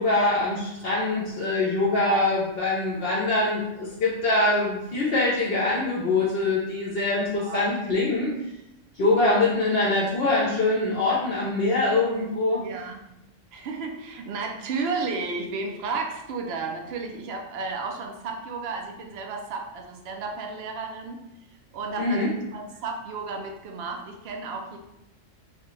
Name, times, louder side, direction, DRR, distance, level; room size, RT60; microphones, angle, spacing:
voice 1, 0.0-8.3 8.9-12.6 22.0-22.3, left 2 dB, 55° left, -6 dB, 0.9 m, -24 dB
voice 2, 1.9-2.3 7.2-7.7 12.6-13.0 13.5-21.2 21.7-22.3 22.5-24.8, right 4 dB, 65° right, 3 dB, 0.8 m, -33 dB
3.3 x 2.8 x 3.1 m, 0.88 s
omnidirectional pair, 1.3 m